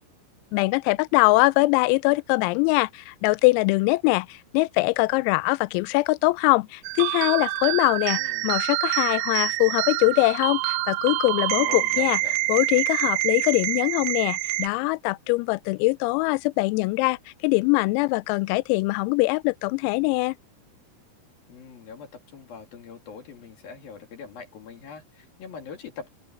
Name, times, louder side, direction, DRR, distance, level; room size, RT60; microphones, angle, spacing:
voice 1, 0.5-12.2 12.5-17.2 17.4-20.4, left 24 dB, 90° left, 3.3 m, -22 dB
sound 1, 6.9-14.7, right 17 dB, 85° right, 3.1 m, -26 dB
voice 2, 8.1-8.5 11.6-12.4 21.5-26.1, left 6 dB, 50° left, 4.1 m, -42 dB
omnidirectional pair, 6.0 m